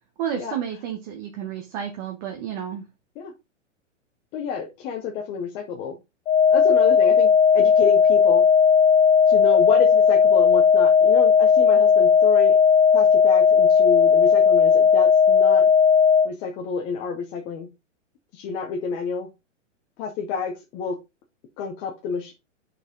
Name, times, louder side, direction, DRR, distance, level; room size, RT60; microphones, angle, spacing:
voice 1, 0.2-2.8, right 9 dB, 35° right, 4 dB, 1.1 m, -31 dB
voice 2, 4.3-6.0 6.5-7.3 7.5-8.4 9.3-12.6 12.9-15.7 16.2-17.7 18.3-19.3 20.0-21.0 21.6-22.3, left 6 dB, 15° left, 1 dB, 0.4 m, -29 dB
sound 1, 6.3-16.3, left 6 dB, 70° left, 1.3 m, -16 dB
7.9 x 4.3 x 3.7 m, 0.24 s
hypercardioid pair, 150°, 37 cm